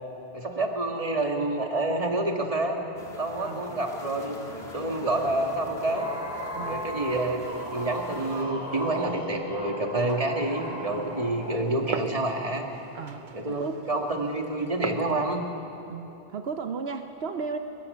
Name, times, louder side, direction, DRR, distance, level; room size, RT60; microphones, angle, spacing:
voice 1, 0.3-2.8 3.2-4.4 4.7-6.1 6.7-7.4 7.7-12.7 13.3-15.4, right 2 dB, 35° right, 2 dB, 2.1 m, -28 dB
sound 1, 3.0-8.4, left 1 dB, 80° left, 2.5 m, -44 dB
sound 2, 5.3-11.6, equal, 5° right, 4.9 m, -37 dB
Glass, 10.0-15.1, right 5 dB, 50° right, 1.0 m, -40 dB
voice 2, 12.9-13.8 15.9-17.6, right 5 dB, 75° right, 6 dB, 1.1 m, -35 dB
23.0 x 21.5 x 6.8 m, 3.0 s
omnidirectional pair, 1.0 m